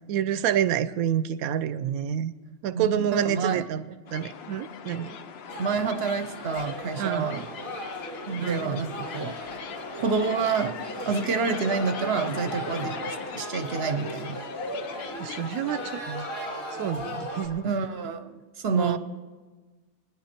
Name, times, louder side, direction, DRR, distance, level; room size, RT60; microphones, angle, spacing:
voice 1, 0.1-2.3 2.6-5.2 7.0-7.3 8.4-8.7 15.2-16.3 16.7-17.7 18.7-19.0, right 9 dB, 85° right, 15 dB, 1.1 m, -28 dB
voice 2, 2.7-3.6 5.6-7.5 8.3-9.4 10.0-10.8 11.0-14.4 17.6-18.2 18.6-19.0, right 5 dB, 55° right, 10 dB, 0.9 m, -28 dB
sound 1, 4.1-16.0, left 7 dB, 55° left, 0.8 m, -41 dB
sound 2, 5.5-17.5, equal, 75° left, 2.8 m, -37 dB
22.0 x 10.0 x 4.4 m, 1.3 s
omnidirectional pair, 1.5 m